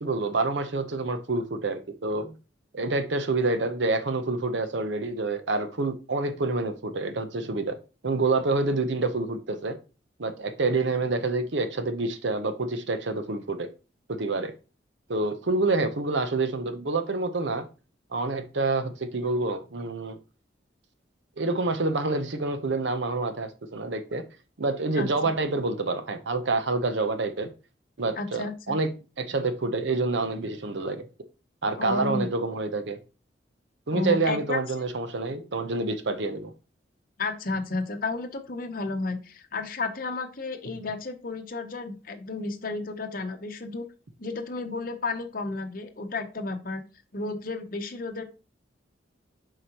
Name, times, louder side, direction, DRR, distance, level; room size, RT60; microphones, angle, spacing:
voice 1, 0.0-2.3 2.7-7.8 8.0-9.8 10.2-13.7 14.1-14.5 15.1-17.6 18.1-20.2 21.4-24.2 24.6-27.5 28.0-28.9 29.2-31.1 31.6-33.0 33.9-36.5, right 3 dB, 75° right, 8 dB, 0.8 m, -27 dB
voice 2, 28.2-28.8 31.8-32.3 33.9-34.6 37.2-43.9 44.2-46.8 47.1-48.2, left 3 dB, 50° left, 5 dB, 0.9 m, -32 dB
7.6 x 4.8 x 2.9 m, 0.32 s
head